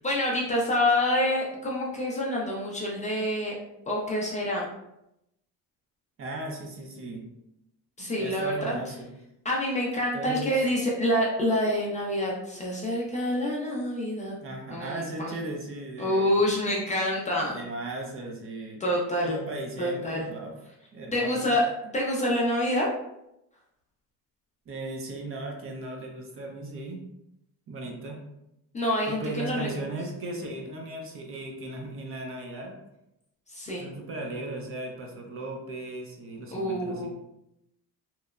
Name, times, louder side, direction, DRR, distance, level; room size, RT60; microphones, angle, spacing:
voice 1, 0.0-3.6 3.9-4.7 8.0-8.7 9.4-14.4 14.7-15.4 16.0-17.6 18.8-19.4 19.8-20.3 21.1-22.9 28.7-29.9 33.5-33.9 36.5-37.1, left 1 dB, 20° left, -3 dB, 0.4 m, -27 dB
voice 2, 6.2-7.3 8.0-9.1 10.1-10.6 14.4-16.4 16.7-16.8 17.5-18.8 19.2-20.6 20.9-21.5 24.7-27.0 27.7-28.2 29.1-32.7 33.7-37.1, right 2 dB, 40° right, 1 dB, 0.5 m, -37 dB
2.9 x 2.0 x 2.3 m, 0.85 s
cardioid pair, 125°, 36 cm